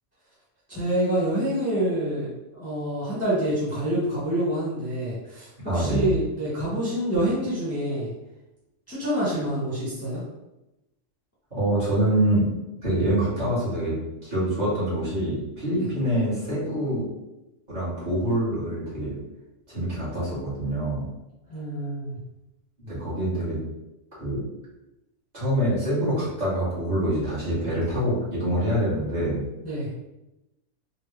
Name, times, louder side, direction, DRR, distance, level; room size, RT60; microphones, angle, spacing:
voice 1, 0.7-8.1 8.9-10.2 21.5-22.2 29.6-29.9, right 1 dB, 15° left, -9 dB, 0.9 m, -27 dB
voice 2, 5.6-6.2 11.5-12.5 12.8-14.0 14.2-17.0 17.7-19.2 19.7-21.1 22.8-23.6 24.1-24.4 25.3-29.5, right 1 dB, 35° right, -10 dB, 1.6 m, -25 dB
3.7 x 2.2 x 3.3 m, 0.94 s
omnidirectional pair, 1.3 m